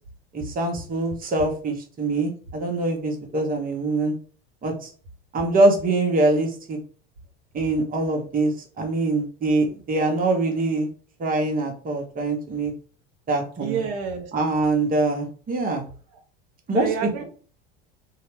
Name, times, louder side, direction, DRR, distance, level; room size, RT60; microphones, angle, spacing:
voice 1, 0.3-4.1 4.6-4.9 5.3-6.8 7.5-10.9 11.2-12.7 13.3-13.9 14.3-15.8 16.7-17.2, right 2 dB, 30° right, 2 dB, 0.8 m, -24 dB
voice 2, 13.6-14.3 16.7-17.2, right 7 dB, 60° right, 2 dB, 0.8 m, -28 dB
2.7 x 2.1 x 3.1 m, 0.40 s
hypercardioid pair, 85°, 31 cm